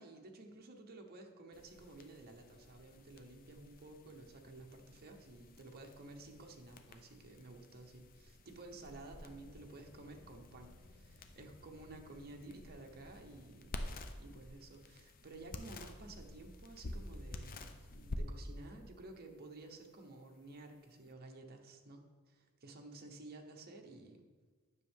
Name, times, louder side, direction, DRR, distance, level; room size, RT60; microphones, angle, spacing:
voice 1, 0.0-13.7 14.2-24.3, right 2 dB, 45° right, 3 dB, 0.9 m, -53 dB
sound 1, 1.5-21.1, left 1 dB, 40° left, 0.6 m, -50 dB
9.9 x 6.3 x 3.6 m, 1.4 s
head